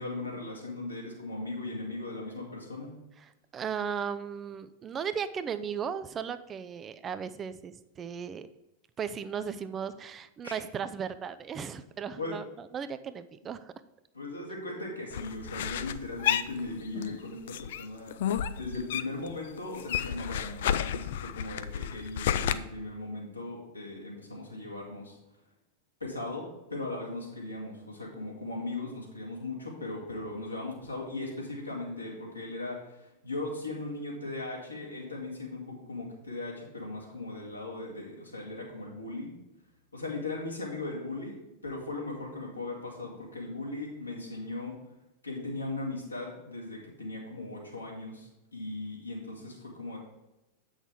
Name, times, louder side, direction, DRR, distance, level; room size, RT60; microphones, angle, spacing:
voice 1, 0.0-2.9 10.4-10.5 12.2-12.4 14.1-25.2 26.0-39.3 39.9-41.4 41.6-44.7 45.2-50.0, left 2 dB, 85° left, -3 dB, 2.2 m, -38 dB
voice 2, 3.2-8.5 9.0-13.7, right 7 dB, 25° right, 12 dB, 0.4 m, -36 dB
sound 1, 15.1-17.2 17.5-19.3 19.6-22.5, left 10 dB, 55° left, 0.4 m, -31 dB
8.0 x 6.3 x 3.6 m, 0.96 s
figure-of-eight pair, 90°, 0 cm